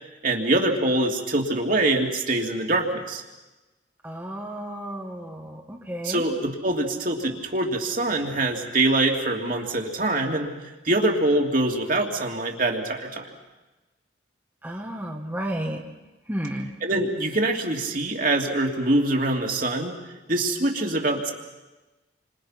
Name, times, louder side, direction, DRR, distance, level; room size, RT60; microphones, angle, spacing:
voice 1, 0.2-3.2 6.0-13.3 16.8-19.9 20.3-21.3, right 2 dB, 45° right, 1 dB, 2.9 m, -24 dB
voice 2, 4.0-6.2 14.6-15.8 16.3-16.7, right 1 dB, 10° right, -1 dB, 1.6 m, -32 dB
29.0 x 26.0 x 6.0 m, 1.1 s
head